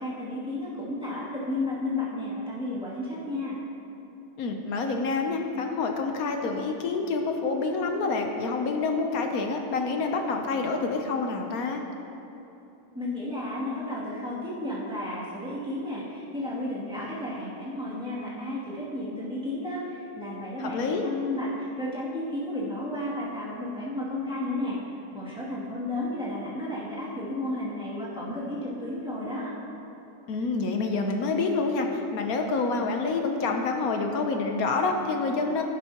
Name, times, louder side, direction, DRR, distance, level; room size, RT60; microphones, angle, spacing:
voice 1, 0.0-3.6 12.9-24.8 25.1-29.5, left 1 dB, 5° right, -9 dB, 2.3 m, -32 dB
voice 2, 4.4-11.8 20.6-21.0 30.3-35.6, left 3 dB, 60° left, 3 dB, 1.1 m, -27 dB
11.5 x 10.5 x 2.9 m, 2.9 s
omnidirectional pair, 1.9 m